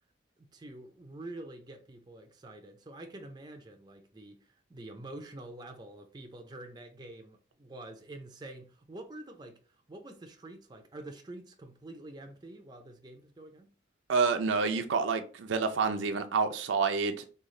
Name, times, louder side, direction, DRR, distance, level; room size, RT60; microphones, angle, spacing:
voice 1, 0.4-9.6 9.9-13.7, right 2 dB, 20° right, 0.4 m, -47 dB
voice 2, 14.1-17.3, right 4 dB, 85° right, 0.4 m, -28 dB
3.1 x 2.3 x 3.7 m
head